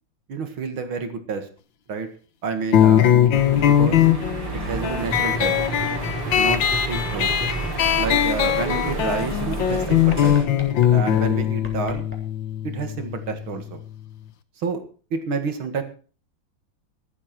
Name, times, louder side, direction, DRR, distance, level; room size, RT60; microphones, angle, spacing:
voice 1, 0.3-1.5 1.9-2.1 2.4-3.2 3.7-4.1 4.6-5.6 6.3-7.3 8.0-10.4 10.9-12.1 12.6-13.8 14.6-14.8 15.1-15.8, right 5 dB, 80° right, 7 dB, 2.8 m, -29 dB
sound 1, 2.7-13.8, left 10 dB, 70° left, 1.7 m, -21 dB
sound 2, 3.3-10.5, right 2 dB, 55° right, 3.9 m, -31 dB
sound 3, 4.4-8.6 8.8-12.1, equal, 5° left, 3.4 m, -34 dB
14.0 x 12.5 x 4.5 m, 0.38 s
omnidirectional pair, 2.2 m